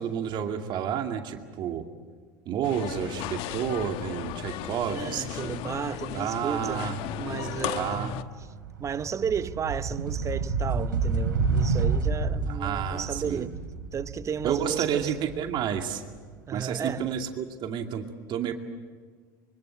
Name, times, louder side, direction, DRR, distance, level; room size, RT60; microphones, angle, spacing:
voice 1, 0.0-1.9 2.5-5.6 6.1-7.0 7.3-8.1 12.5-13.5 14.4-16.0 16.5-18.5, right 8 dB, 50° right, 2.3 m, -30 dB
sound 1, 2.6-8.2, left 13 dB, 60° left, 1.1 m, -35 dB
voice 2, 4.9-8.2 8.8-13.6 13.9-15.1 16.5-17.1, right 7 dB, 30° right, 0.9 m, -33 dB
sound 2, 7.1-7.3 7.7-16.5, right 4 dB, 90° right, 3.4 m, -30 dB
25.5 x 24.5 x 8.1 m
hypercardioid pair, 85°, 10 cm